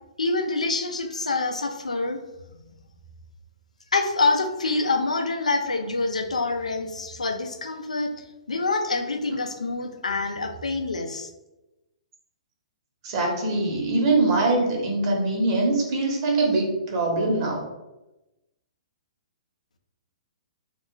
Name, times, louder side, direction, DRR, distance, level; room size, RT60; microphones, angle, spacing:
voice 1, 0.2-2.2 3.9-8.1 8.5-11.3, left 3 dB, 90° left, 5 dB, 0.4 m, -26 dB
voice 2, 13.0-17.6, right 2 dB, 45° right, 0 dB, 1.0 m, -23 dB
2.4 x 2.1 x 3.7 m, 0.97 s
hypercardioid pair, 125°, 4 cm